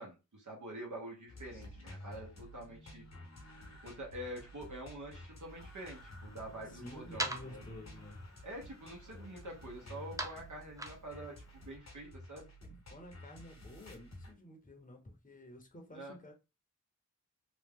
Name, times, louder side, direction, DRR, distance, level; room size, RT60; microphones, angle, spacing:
voice 1, 0.0-3.0 3.8-7.6 8.4-12.5 15.9-16.1, right 1 dB, 70° right, 1.1 m, -46 dB
sound 1, 1.3-14.3, left 1 dB, 60° left, 1.0 m, -52 dB
sound 2, 5.3-11.8, right 1 dB, 10° right, 0.4 m, -46 dB
voice 2, 6.6-8.2 12.6-16.3, left 1 dB, 25° left, 0.9 m, -51 dB
3.0 x 2.3 x 3.6 m
wide cardioid pair, 55°, 31 cm